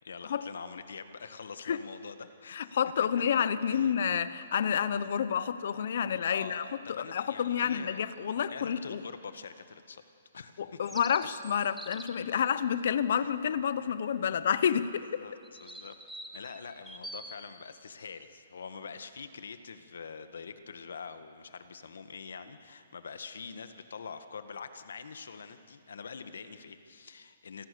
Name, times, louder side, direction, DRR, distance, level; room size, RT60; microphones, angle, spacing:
voice 1, 0.0-2.8 3.3-3.9 6.3-10.8 13.2-13.3 15.2-15.9 16.3-27.7, left 5 dB, 75° left, 9 dB, 1.6 m, -45 dB
voice 2, 2.5-6.6 6.9-9.0 10.6-15.2, left 8 dB, 50° left, 14 dB, 0.9 m, -29 dB
sound 1, 10.9-12.3 15.4-17.4, right 1 dB, ahead, 0.8 m, -45 dB
27.5 x 18.0 x 7.0 m, 2.3 s
hypercardioid pair, 170°, 0 cm